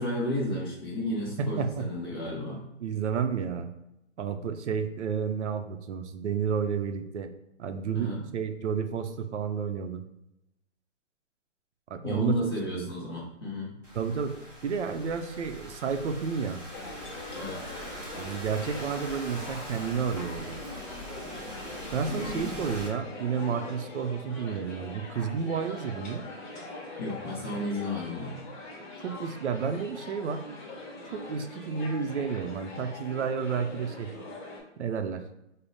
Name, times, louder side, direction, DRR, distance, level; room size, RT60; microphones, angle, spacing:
voice 1, 0.0-2.6 7.9-8.2 12.0-13.8 17.3-17.6 22.1-22.6 27.0-28.4, left 1 dB, 20° left, -4 dB, 0.5 m, -33 dB
voice 2, 1.4-1.9 2.8-3.7 4.2-7.3 7.6-10.0 11.9-12.4 12.7-12.9 13.9-14.4 14.6-16.6 18.1-20.6 21.9-26.2 29.0-30.4 31.1-34.1 34.8-35.2, right 6 dB, 65° right, 8 dB, 0.5 m, -31 dB
Thunderstorm / Rain, 13.8-22.9, equal, 10° right, 0.8 m, -42 dB
sound 1, 16.7-34.6, left 2 dB, 40° left, 1.1 m, -43 dB
3.5 x 2.1 x 3.9 m, 0.88 s
hypercardioid pair, 155°, 37 cm